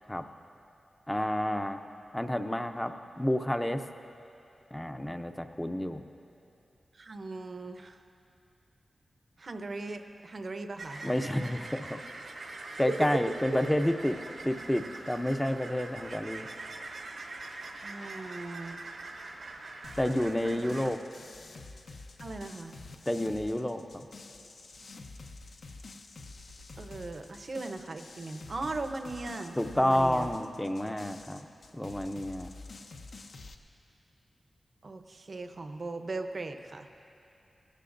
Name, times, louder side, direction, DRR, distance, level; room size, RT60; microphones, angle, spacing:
voice 1, 1.1-1.8 2.1-3.8 4.7-6.0 11.0-12.0 12.8-14.2 14.4-16.5 20.0-21.0 23.1-24.1 29.6-31.4 31.7-32.5, left 1 dB, 10° left, 7 dB, 0.5 m, -29 dB
voice 2, 6.9-8.0 9.4-11.0 13.5-13.6 17.8-18.8 20.6-20.7 22.2-22.7 26.8-30.3 34.8-36.9, right 3 dB, 50° right, 6 dB, 0.7 m, -39 dB
sound 1, 10.8-20.9, right 2 dB, 80° right, 1.1 m, -43 dB
sound 2, 19.8-33.5, left 3 dB, 70° left, 0.7 m, -48 dB
19.5 x 16.5 x 2.6 m, 2.7 s
wide cardioid pair, 130°, 0 cm